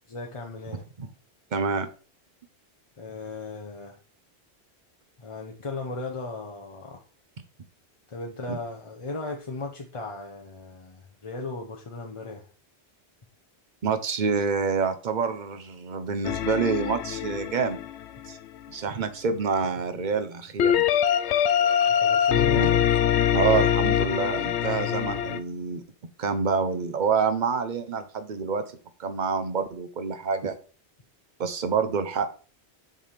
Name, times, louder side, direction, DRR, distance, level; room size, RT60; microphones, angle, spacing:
voice 1, 0.1-0.8 3.0-4.0 5.2-7.0 8.1-12.5 21.9-22.9, left 3 dB, 30° left, 0.8 m, -36 dB
voice 2, 1.5-1.9 8.5-8.6 13.8-17.8 18.3-18.4 18.7-20.8 22.6-22.7 23.3-25.8 26.2-28.6 29.0-30.6 31.4-32.3, right 5 dB, 45° right, 0.9 m, -27 dB
sound 1, 16.2-18.7 20.6-25.4, left 9 dB, 80° left, 0.9 m, -23 dB
7.4 x 3.5 x 5.7 m
omnidirectional pair, 1.1 m